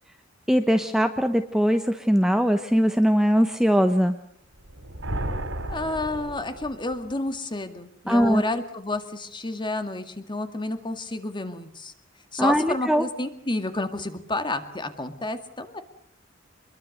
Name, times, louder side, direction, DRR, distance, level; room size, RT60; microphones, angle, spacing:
voice 1, 0.5-4.2 8.1-8.4 12.4-13.0, equal, 5° right, 7 dB, 1.0 m, -21 dB
sound 1, 4.6-7.2, right 1 dB, 75° right, 3.6 m, -34 dB
voice 2, 5.7-11.9 12.3-15.8, left 2 dB, 25° left, 8 dB, 2.1 m, -30 dB
26.0 x 22.0 x 6.6 m, 0.70 s
head